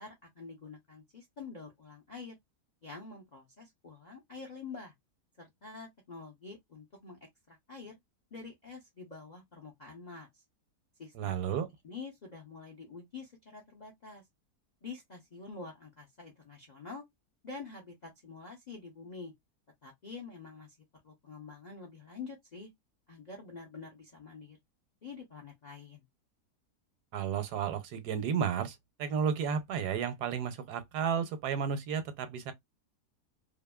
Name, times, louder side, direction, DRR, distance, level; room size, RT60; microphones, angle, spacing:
voice 1, 0.0-2.3 2.8-4.9 5.4-7.9 8.3-10.4 11.0-11.3 11.8-14.2 14.8-17.0 17.4-19.3 19.8-20.8 21.0-22.7 23.1-24.6 25.0-26.0, left 4 dB, 55° left, 0.5 m, -47 dB
voice 2, 11.2-11.7 27.1-32.5, right 7 dB, 80° right, 1.2 m, -32 dB
2.8 x 2.5 x 2.2 m
omnidirectional pair, 1.7 m